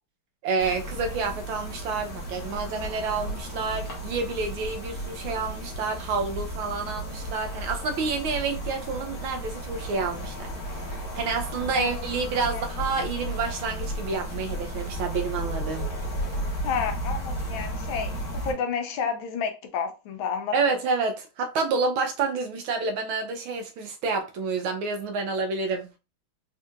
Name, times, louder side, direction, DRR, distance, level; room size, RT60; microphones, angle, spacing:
voice 1, 0.4-15.9 20.5-26.0, right 4 dB, 80° right, 1.5 m, -29 dB
sound 1, 0.6-18.5, right 1 dB, 50° left, 1.6 m, -34 dB
voice 2, 16.6-18.1 18.4-20.5, left 6 dB, 75° left, 1.4 m, -30 dB
4.2 x 2.8 x 2.4 m
omnidirectional pair, 2.3 m